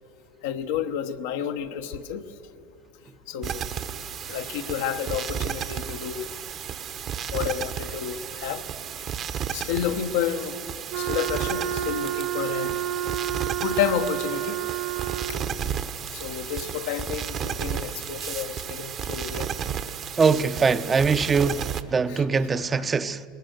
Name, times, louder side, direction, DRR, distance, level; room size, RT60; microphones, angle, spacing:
voice 1, 0.4-2.2 3.3-3.7 4.2-6.3 7.3-8.7 9.5-10.6 10.9-12.8 13.6-14.6 16.1-19.5 22.1-22.2, left 9 dB, 75° left, 1.0 m, -30 dB
sound 1, 3.4-21.8, right 8 dB, 45° right, 1.0 m, -33 dB
Wind instrument woodwind instrument, 10.9-15.6, right 11 dB, 65° right, 0.7 m, -30 dB
voice 2, 20.2-23.2, right 5 dB, 25° right, 0.6 m, -22 dB
21.5 x 19.5 x 7.9 m
hypercardioid pair, 95°, 0 cm